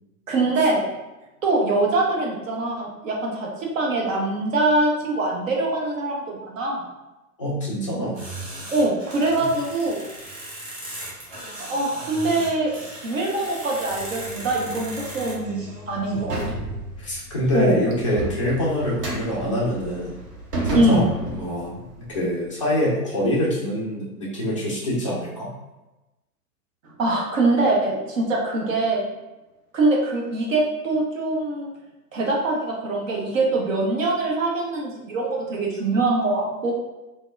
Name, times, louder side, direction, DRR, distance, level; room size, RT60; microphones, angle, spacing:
voice 1, 0.3-0.9 1.4-6.8 8.7-10.0 11.7-16.4 17.5-17.8 20.7-21.1 26.8-29.1 29.7-31.7 32.1-36.7, right 2 dB, 55° right, -2 dB, 0.8 m, -23 dB
voice 2, 7.4-8.2 9.4-9.5 16.1-16.2 16.5-20.1 20.6-21.0 21.3-25.5, left 1 dB, 25° left, -5 dB, 0.3 m, -25 dB
sound 1, 8.1-15.4, right 1 dB, 25° right, 0.7 m, -37 dB
sound 2, 13.9-22.5, right 1 dB, 80° right, 0.9 m, -34 dB
3.4 x 2.1 x 2.3 m, 1.0 s
figure-of-eight pair, 110°, 47 cm